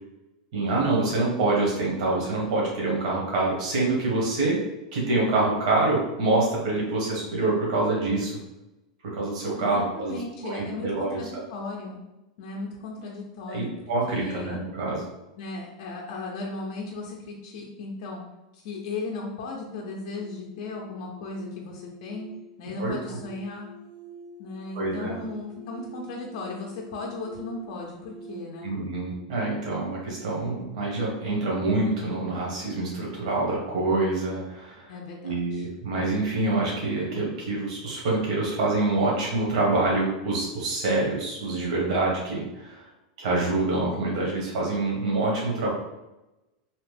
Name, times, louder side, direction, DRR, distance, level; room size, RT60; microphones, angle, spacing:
voice 1, 0.5-4.6 4.9-8.3 9.0-10.2 10.4-11.2 13.5-15.1 22.8-22.9 24.7-25.1 28.6-34.9 35.2-42.9 43.2-45.7, right 2 dB, 60° right, -3 dB, 0.9 m, -26 dB
voice 2, 9.6-12.0 12.4-13.7 14.1-14.6 15.4-18.2 18.5-22.3 22.6-23.7 24.4-28.7 34.9-35.7, left 3 dB, 45° left, -2 dB, 0.5 m, -36 dB
sound 1, 19.5-30.6, right 2 dB, 20° right, 0.5 m, -47 dB
2.8 x 2.0 x 3.2 m, 0.98 s
supercardioid pair, 165°, 4 cm